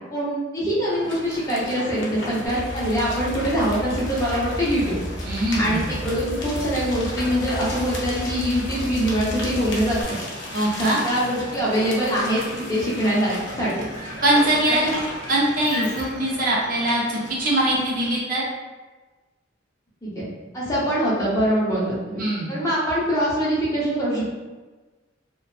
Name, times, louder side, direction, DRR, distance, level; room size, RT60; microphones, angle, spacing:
voice 1, 0.1-5.0 5.6-10.2 10.6-13.9 14.7-15.0 20.0-20.2 20.5-22.2 22.5-24.3, equal, 15° left, -8 dB, 0.6 m, -24 dB
sound 1, 0.8-18.1, left 1 dB, 60° left, 0.6 m, -35 dB
Idling, 2.4-10.0, equal, 80° right, 0.7 m, -33 dB
voice 2, 5.3-5.9 10.5-11.0 14.2-14.8 15.3-18.4 22.2-22.5, right 1 dB, 45° right, -4 dB, 0.5 m, -22 dB
2.6 x 2.2 x 2.3 m, 1.3 s
head